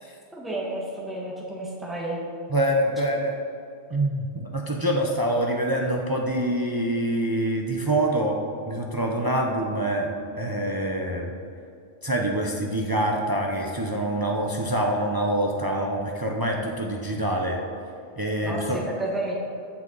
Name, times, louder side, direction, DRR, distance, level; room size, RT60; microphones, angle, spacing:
voice 1, 0.3-2.2 18.4-19.3, right 1 dB, ahead, -4 dB, 1.7 m, -31 dB
voice 2, 2.5-3.4 3.9-8.4 8.7-10.1 10.4-11.3 12.0-17.6 18.2-18.8, right 1 dB, 25° right, 0 dB, 0.7 m, -25 dB
15.5 x 5.9 x 4.0 m, 2.4 s
omnidirectional pair, 1.2 m